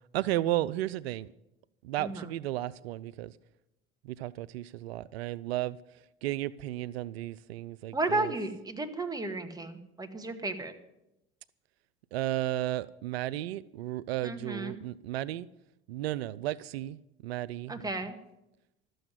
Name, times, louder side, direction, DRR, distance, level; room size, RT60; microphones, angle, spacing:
voice 1, 0.1-1.3 1.8-3.3 4.0-5.8 6.2-8.3 12.1-15.5 15.9-17.8, right 14 dB, 80° right, 0.5 m, -33 dB
voice 2, 7.9-10.7 14.2-14.8 17.7-18.2, right 2 dB, 10° right, 1.9 m, -33 dB
12.5 x 7.8 x 9.6 m
hypercardioid pair, 80°, 30 cm